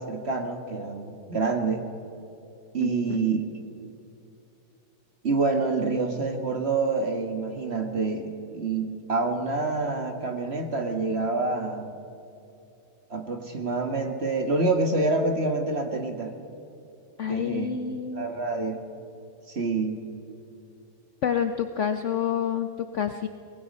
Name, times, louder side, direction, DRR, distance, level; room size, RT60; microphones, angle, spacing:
voice 1, 0.0-1.8 2.7-3.4 5.2-11.9 13.1-16.3 17.3-17.7 18.1-18.8 19.5-20.0, right 3 dB, 35° right, 5 dB, 1.8 m, -27 dB
voice 2, 2.8-3.3 17.2-18.3 21.2-23.3, left 8 dB, 60° left, 8 dB, 0.8 m, -28 dB
24.5 x 19.5 x 5.4 m, 2.7 s
omnidirectional pair, 1.9 m